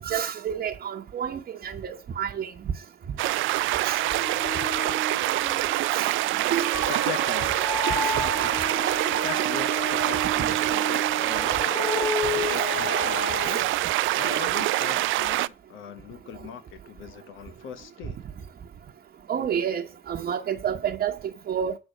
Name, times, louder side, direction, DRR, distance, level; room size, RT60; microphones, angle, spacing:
voice 1, 0.0-2.5 3.8-4.3 5.9-6.2 6.5-6.7 8.0-8.3 10.4-10.6 12.4-12.8 13.4-13.6 19.3-21.8, right 8 dB, 50° right, 1.0 m, -30 dB
sound 1, 3.2-13.7, left 2 dB, 55° left, 3.2 m, -33 dB
sound 2, 3.2-15.5, right 16 dB, 80° right, 0.4 m, -25 dB
voice 2, 6.8-7.5 9.1-11.8 12.3-13.7 14.1-18.2, left 8 dB, 80° left, 0.9 m, -40 dB
8.5 x 4.0 x 6.5 m
cardioid pair, 90°, 20 cm